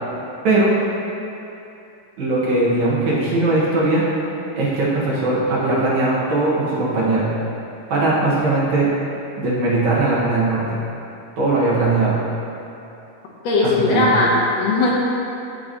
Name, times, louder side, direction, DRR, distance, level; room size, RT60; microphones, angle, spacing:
voice 1, 2.2-4.0 4.6-7.3 7.9-8.9 9.4-10.8 11.4-12.2 13.6-14.1, right 2 dB, 75° right, -7 dB, 2.8 m, -19 dB
voice 2, 13.4-14.9, left 2 dB, 70° left, -4 dB, 2.0 m, -18 dB
14.0 x 4.6 x 2.8 m, 2.8 s
omnidirectional pair, 3.3 m